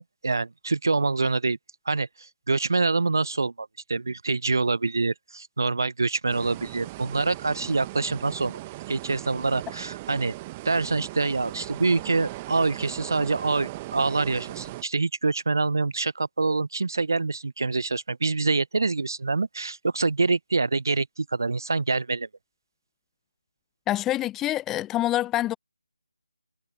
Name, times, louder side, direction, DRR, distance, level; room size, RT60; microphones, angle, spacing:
voice 1, 0.0-1.6 1.9-8.6 8.9-10.3 10.6-22.3, right 3 dB, 55° right, 0.8 m, -26 dB
sound 1, 6.3-14.8, right 19 dB, 15° right, 1.4 m, -38 dB
voice 2, 23.9-25.5, left 14 dB, 10° left, 0.7 m, -26 dB
figure-of-eight pair, 155°, 2 cm